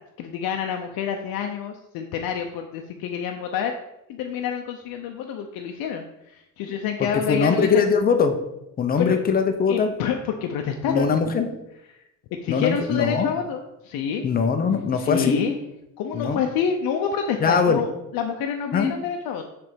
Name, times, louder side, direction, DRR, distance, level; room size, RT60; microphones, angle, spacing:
voice 1, 0.0-3.7 4.1-7.8 9.0-9.2 9.7-11.1 12.4-14.3 14.9-15.6 16.0-19.4, left 7 dB, 75° left, 3 dB, 0.7 m, -28 dB
voice 2, 7.3-8.4 8.8-9.9 10.9-11.5 12.5-13.3 14.2-15.4 16.1-16.4 17.4-17.8 18.7-18.9, left 5 dB, 25° left, 7 dB, 0.6 m, -21 dB
6.9 x 3.4 x 5.1 m, 0.89 s
cardioid pair, 160°, 35 cm